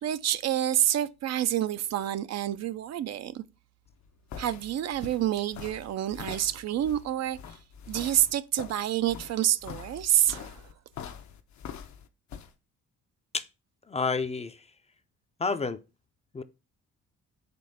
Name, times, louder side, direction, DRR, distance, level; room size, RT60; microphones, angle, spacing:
voice 1, 0.0-3.4 4.4-7.4 7.9-10.7, right 11 dB, 60° right, 0.5 m, -28 dB
sound 1, 3.9-12.5, left 7 dB, 65° left, 0.8 m, -44 dB
voice 2, 13.9-14.7 15.4-15.8 16.3-16.4, left 4 dB, 20° left, 0.5 m, -29 dB
5.2 x 3.5 x 5.5 m
cardioid pair, 90°, 30 cm